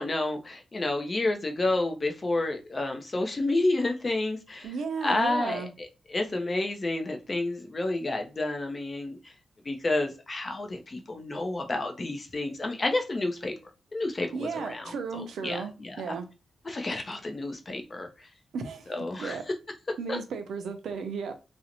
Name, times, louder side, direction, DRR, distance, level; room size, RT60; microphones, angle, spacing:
voice 1, 0.0-4.7 5.0-9.3 9.6-13.5 13.9-16.0 16.6-18.3 18.9-19.4 20.1-20.2, left 2 dB, 25° left, 0.4 m, -30 dB
voice 2, 4.6-5.7 14.3-16.3 18.5-18.9 19.2-19.4 20.0-21.3, right 5 dB, 80° right, 0.5 m, -34 dB
2.5 x 2.0 x 2.8 m
wide cardioid pair, 160°, 0 cm